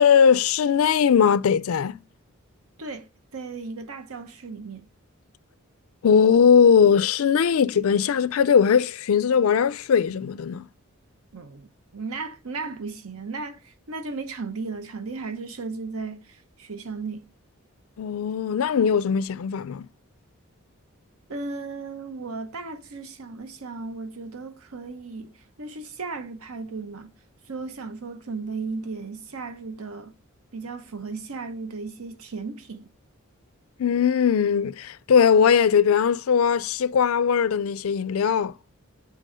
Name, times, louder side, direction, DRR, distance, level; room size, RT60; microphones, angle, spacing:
voice 1, 0.0-2.0 6.0-10.6 18.0-19.9 33.8-38.5, left 7 dB, 75° left, 0.4 m, -20 dB
voice 2, 2.8-4.9 11.3-17.3 21.3-27.1 27.5-30.1 30.5-32.9, right 4 dB, 75° right, 0.9 m, -35 dB
7.6 x 3.4 x 5.0 m
head